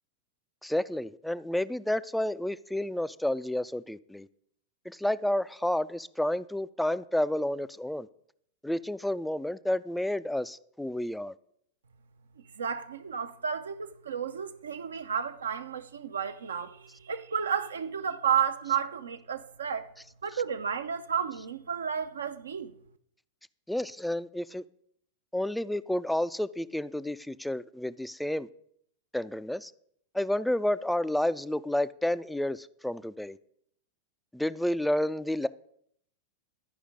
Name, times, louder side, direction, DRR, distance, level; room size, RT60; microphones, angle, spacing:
voice 1, 0.6-4.3 4.9-8.1 8.6-11.3 23.7-24.6 25.3-28.5 29.1-29.7 30.1-33.4 34.3-35.5, left 1 dB, 5° left, 0.3 m, -30 dB
voice 2, 12.4-19.9 20.2-22.7, right 7 dB, 75° right, 0.5 m, -32 dB
11.5 x 5.0 x 5.1 m
figure-of-eight pair, 95°, 0 cm